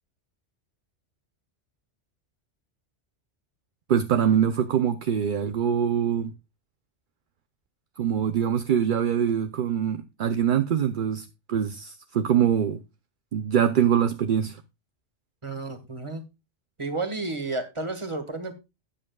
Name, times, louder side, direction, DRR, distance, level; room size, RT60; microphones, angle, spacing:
voice 1, 3.9-6.3 8.0-12.8 13.3-14.6, right 8 dB, 55° right, 0.7 m, -24 dB
voice 2, 15.4-16.2 16.8-18.5, right 3 dB, 25° right, 1.7 m, -31 dB
12.5 x 9.8 x 2.3 m
omnidirectional pair, 1.2 m